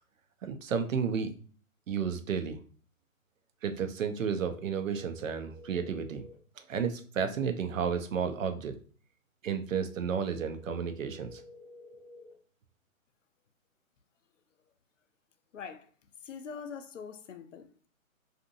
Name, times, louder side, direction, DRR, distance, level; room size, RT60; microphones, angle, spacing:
voice 1, 0.4-1.3 1.9-2.6 3.6-6.2 6.7-8.7 9.4-11.4, right 6 dB, 65° right, 0.6 m, -32 dB
sound 1, 4.3-6.3 10.3-12.3, left 2 dB, 15° right, 1.1 m, -51 dB
voice 2, 15.5-15.9 16.2-17.9, left 6 dB, 60° left, 0.5 m, -43 dB
2.7 x 2.5 x 2.5 m
hypercardioid pair, 145°, 42 cm